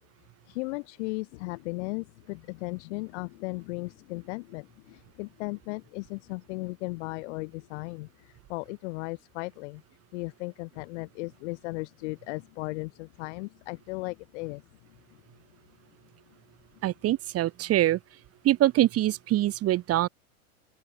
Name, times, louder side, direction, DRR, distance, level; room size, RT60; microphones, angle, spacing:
voice 1, 0.5-8.1 8.5-9.8 10.1-14.6, left 25 dB, 50° left, 5.7 m, -36 dB
voice 2, 16.8-18.0 18.4-20.1, right 14 dB, 30° right, 5.2 m, -24 dB
open air
hypercardioid pair, 110°, 44 cm